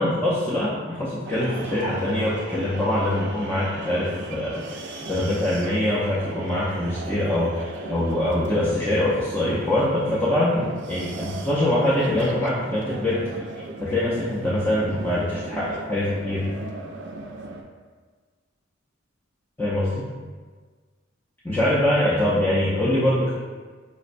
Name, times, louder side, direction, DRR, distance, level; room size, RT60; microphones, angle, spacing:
voice 1, 0.0-4.8 5.1-13.2 13.8-16.5 19.6-20.1 21.4-23.3, left 1 dB, 10° left, -10 dB, 0.5 m, -23 dB
sound 1, 1.3-17.6, right 2 dB, 60° right, 0.4 m, -37 dB
5.1 x 2.1 x 2.5 m, 1.5 s
head